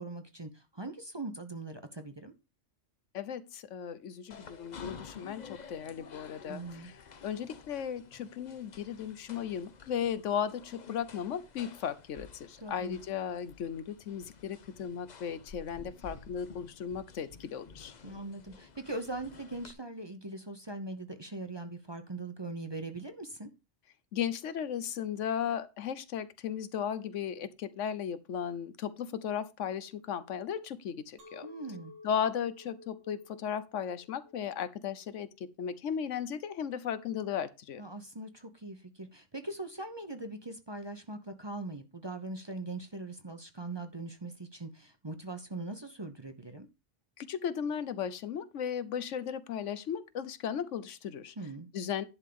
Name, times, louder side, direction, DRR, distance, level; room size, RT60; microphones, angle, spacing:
voice 1, 0.0-2.3 6.5-6.9 12.6-13.0 18.0-23.5 31.4-31.9 37.8-46.7 51.4-51.7, right 2 dB, 25° right, 0.8 m, -41 dB
voice 2, 3.1-7.0 7.2-17.9 24.1-31.5 32.0-37.8 47.2-51.3 51.7-52.0, left 8 dB, 75° left, 1.1 m, -36 dB
sound 1, 4.3-19.7, left 5 dB, 40° left, 0.8 m, -51 dB
Chink clink, 31.2-36.4, left 2 dB, 75° right, 3.4 m, -55 dB
11.0 x 3.6 x 6.9 m
omnidirectional pair, 1.3 m